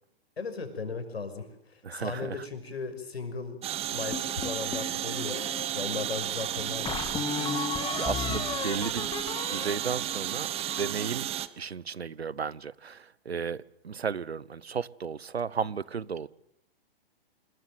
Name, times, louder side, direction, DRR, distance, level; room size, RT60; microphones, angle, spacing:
voice 1, 0.4-3.6 3.9-5.5 5.7-7.2, left 4 dB, 80° left, 6.0 m, -37 dB
voice 2, 1.8-2.4 8.0-9.1 9.5-10.5 10.8-11.3 11.6-16.3, right 6 dB, 85° right, 1.0 m, -34 dB
sound 1, 3.6-11.5, right 12 dB, 20° right, 1.2 m, -33 dB
sound 2, 4.1-5.7 6.2-6.3 6.8-11.0, left 6 dB, 15° left, 2.9 m, -35 dB
27.5 x 21.0 x 7.8 m
hypercardioid pair, 125°, 31 cm